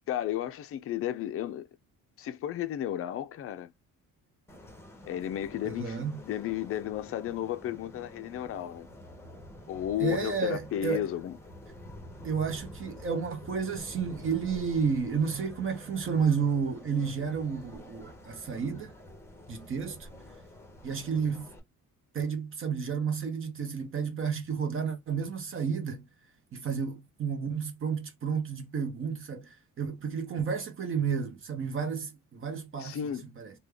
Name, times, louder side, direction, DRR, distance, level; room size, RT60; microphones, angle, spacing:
voice 1, 0.1-1.7 2.2-3.7 5.0-8.9 9.7-11.3 32.8-33.2, left 11 dB, 45° left, 0.4 m, -33 dB
sound 1, 4.5-21.6, left 1 dB, 10° left, 1.0 m, -48 dB
voice 2, 5.6-6.2 10.0-11.0 12.2-18.9 19.5-20.1 20.8-21.5 22.1-26.0 26.5-33.0 33.4-33.5, right 6 dB, 40° right, 0.7 m, -31 dB
3.3 x 2.2 x 3.3 m
cardioid pair, 150°, 32 cm